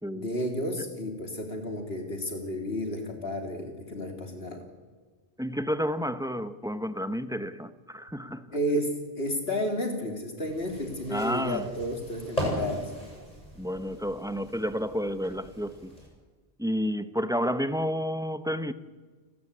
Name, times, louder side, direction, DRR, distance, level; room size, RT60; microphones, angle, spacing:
voice 1, 0.1-4.6 8.5-12.9, equal, 65° left, 3.4 m, -32 dB
voice 2, 5.4-8.6 11.1-11.7 13.6-15.9 16.6-18.7, equal, 5° right, 0.7 m, -30 dB
sound 1, 10.5-16.1, equal, 35° left, 8.1 m, -38 dB
30.0 x 13.5 x 8.7 m
omnidirectional pair, 1.1 m